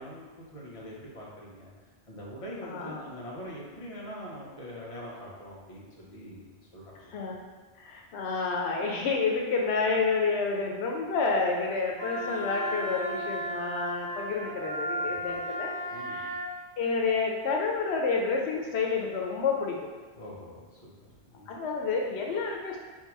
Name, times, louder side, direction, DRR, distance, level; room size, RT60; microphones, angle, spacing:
voice 1, 0.0-1.7 2.1-7.1 15.0-15.3 15.9-16.2 20.1-21.5, equal, 35° left, -5 dB, 0.9 m, -43 dB
voice 2, 2.6-3.0 7.1-7.4 7.8-16.3 16.8-19.9 21.5-22.8, left 4 dB, 85° left, 0 dB, 0.9 m, -29 dB
Wind instrument woodwind instrument, 12.0-16.5, equal, 15° left, 0.3 m, -35 dB
3.7 x 2.8 x 4.5 m, 1.4 s
omnidirectional pair, 1.1 m